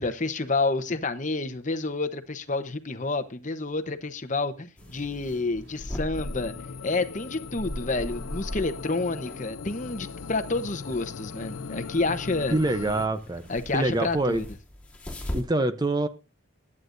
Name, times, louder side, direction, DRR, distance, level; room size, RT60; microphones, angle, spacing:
voice 1, 0.0-6.6 6.8-12.6 13.5-14.5, left 3 dB, 35° left, 0.9 m, -29 dB
sound 1, 4.8-15.4, equal, 5° left, 2.7 m, -40 dB
sound 2, 4.8-13.7, equal, 60° right, 2.3 m, -50 dB
sound 3, 6.1-13.1, left 5 dB, 80° left, 0.5 m, -40 dB
voice 2, 12.5-13.4 13.7-14.4 15.3-16.1, right 2 dB, 20° right, 0.7 m, -25 dB
22.5 x 9.7 x 2.6 m
head